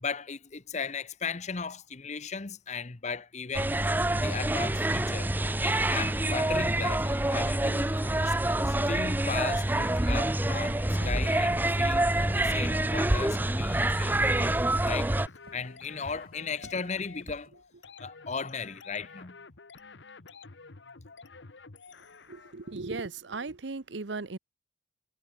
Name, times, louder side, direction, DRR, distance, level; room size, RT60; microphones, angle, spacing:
voice 1, 0.0-5.3 5.6-8.3 8.6-14.6 14.8-15.2 15.5-17.5 18.0-19.4, left 5 dB, 40° left, 0.9 m, -37 dB
sound 1, 3.5-15.3, right 1 dB, 10° right, 0.6 m, -27 dB
sound 2, 7.0-22.7, left 4 dB, 75° left, 1.3 m, -50 dB
sound 3, 7.9-17.5, equal, 55° right, 5.6 m, -51 dB
voice 2, 22.3-24.4, right 3 dB, 80° right, 0.9 m, -37 dB
head